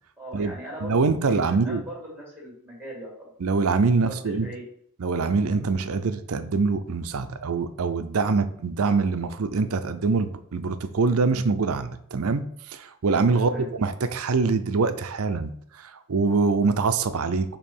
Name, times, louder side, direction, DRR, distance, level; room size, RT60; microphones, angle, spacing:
voice 1, 0.2-3.3 3.9-4.6 13.3-13.7, equal, 10° right, -6 dB, 2.6 m, -40 dB
voice 2, 0.8-1.8 3.4-4.5 5.0-17.6, right 4 dB, 75° right, 11 dB, 0.5 m, -24 dB
6.8 x 2.9 x 5.4 m, 0.66 s
head